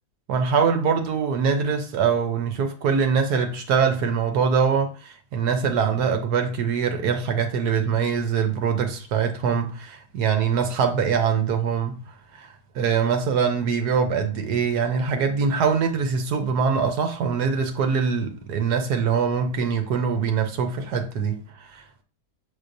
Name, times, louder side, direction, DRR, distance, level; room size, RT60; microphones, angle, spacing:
voice 1, 0.3-12.0 12.3-22.0, right 6 dB, 80° right, 1.3 m, -23 dB
6.3 x 5.7 x 2.6 m
omnidirectional pair, 1.7 m